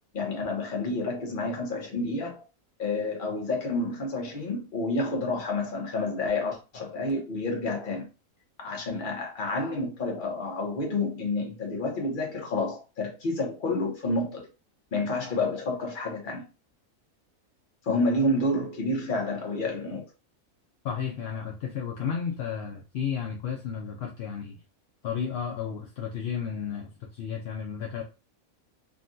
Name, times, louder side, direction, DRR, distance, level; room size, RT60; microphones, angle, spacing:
voice 1, 0.1-2.5 2.8-8.1 8.6-14.5 14.9-16.4 17.8-20.1, left 2 dB, 40° left, 0.9 m, -29 dB
voice 2, 20.8-24.6 25.0-28.0, left 7 dB, 65° left, 0.7 m, -33 dB
3.6 x 2.2 x 2.5 m
omnidirectional pair, 1.5 m